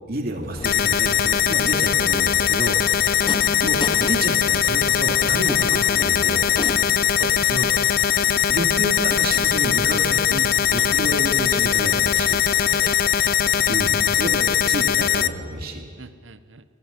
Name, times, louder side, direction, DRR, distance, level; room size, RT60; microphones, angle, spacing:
voice 1, 0.0-2.8 3.6-6.5 7.4-7.7 8.5-12.4 13.7-15.9, right 1 dB, 50° right, 2 dB, 2.7 m, -29 dB
sound 1, 0.5-14.7, left 1 dB, 25° left, 0.9 m, -36 dB
sound 2, 0.6-15.3, left 9 dB, 45° left, 0.5 m, -20 dB
voice 2, 7.2-7.7 8.2-8.3 10.8-10.9 12.7-13.3 16.0-16.6, right 4 dB, 65° right, 13 dB, 0.9 m, -40 dB
18.5 x 17.5 x 9.8 m, 2.1 s
head